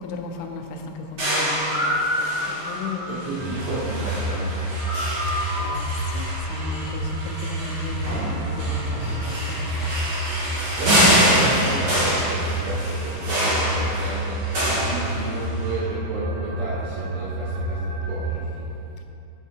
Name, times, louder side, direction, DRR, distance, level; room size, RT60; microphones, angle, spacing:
voice 1, 0.0-3.3 5.5-9.9, left 4 dB, 85° left, 3 dB, 3.1 m, -35 dB
sound 1, 1.2-15.6, equal, 55° right, 1.5 m, -25 dB
voice 2, 3.0-4.7 10.3-18.7, right 1 dB, 75° right, -9 dB, 2.3 m, -33 dB
sound 2, 3.4-18.3, right 1 dB, 90° right, 3.3 m, -29 dB
8.2 x 7.3 x 2.7 m, 2.7 s
omnidirectional pair, 5.4 m